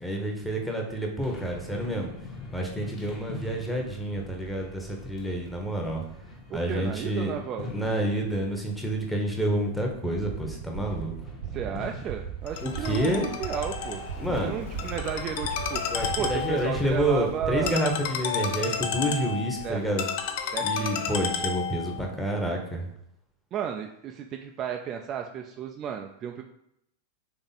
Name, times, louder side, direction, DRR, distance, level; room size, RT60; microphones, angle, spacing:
voice 1, 0.0-2.1 2.5-6.0 6.5-7.3 7.7-11.1 12.6-13.2 14.2-14.6 15.9-20.0 20.6-22.9, right 1 dB, ahead, 0 dB, 0.9 m, -29 dB
sound 1, 1.2-17.2, left 3 dB, 25° left, 1.1 m, -45 dB
voice 2, 6.5-7.9 11.5-14.0 14.4-15.8 16.2-17.8 19.6-19.9 20.5-21.2 21.9-22.1 23.5-26.4, right 8 dB, 30° right, 3 dB, 0.3 m, -33 dB
sound 2, 10.1-17.7, right 9 dB, 60° right, 0.8 m, -38 dB
Ringtone, 12.5-22.0, left 6 dB, 50° left, 0.5 m, -32 dB
3.8 x 3.4 x 4.0 m, 0.79 s
figure-of-eight pair, 90°, 0 cm